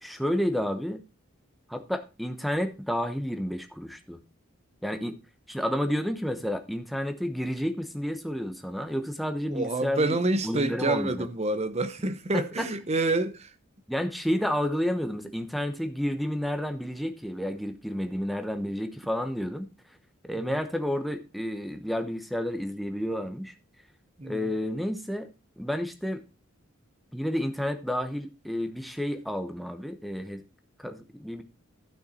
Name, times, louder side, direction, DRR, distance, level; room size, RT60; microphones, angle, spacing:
voice 1, 0.0-1.0 1.7-4.2 4.8-5.2 5.5-10.2 10.4-11.3 12.3-12.7 13.9-19.7 20.2-23.5 24.2-25.3 25.6-26.2 27.1-30.4 30.8-31.4, equal, ahead, 0.9 m, -30 dB
voice 2, 9.5-13.5 24.2-24.5, right 2 dB, 30° right, 0.8 m, -27 dB
12.0 x 6.5 x 4.3 m
head